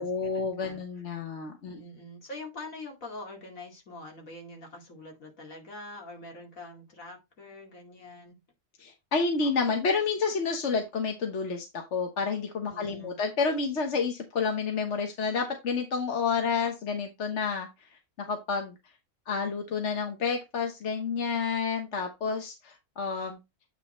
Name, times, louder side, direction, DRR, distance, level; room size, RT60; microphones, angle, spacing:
voice 1, 0.0-1.8 8.8-17.7 18.2-18.7 19.3-23.4, left 5 dB, 60° left, 1.4 m, -29 dB
voice 2, 0.6-1.0 1.7-8.4 12.7-13.2, left 2 dB, 75° left, 2.7 m, -44 dB
9.1 x 3.4 x 4.3 m
omnidirectional pair, 1.4 m